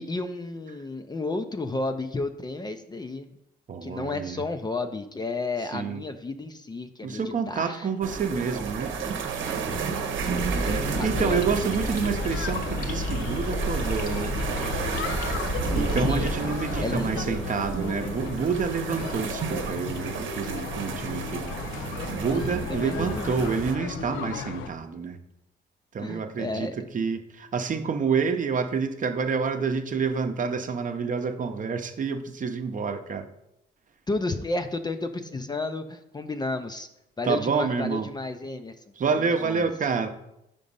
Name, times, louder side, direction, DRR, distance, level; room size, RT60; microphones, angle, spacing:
voice 1, 0.0-3.3 3.8-7.9 9.7-10.1 10.9-11.6 16.0-16.3 16.8-17.2 22.3-23.4 26.0-26.8 34.1-36.9 37.2-39.7, left 2 dB, 20° left, 8 dB, 0.5 m, -32 dB
voice 2, 3.7-4.4 5.7-6.0 7.0-8.9 10.6-14.4 15.6-21.5 21.9-25.2 25.9-33.3 37.3-38.1 39.0-40.1, right 5 dB, 40° right, 7 dB, 0.7 m, -28 dB
sound 1, 8.0-23.8, right 5 dB, 75° right, 0.9 m, -32 dB
sound 2, 10.3-16.4, left 2 dB, 50° left, 1.3 m, -32 dB
sound 3, 12.1-24.7, left 7 dB, 85° left, 0.5 m, -36 dB
5.2 x 4.9 x 5.4 m, 0.83 s
cardioid pair, 90°, 20 cm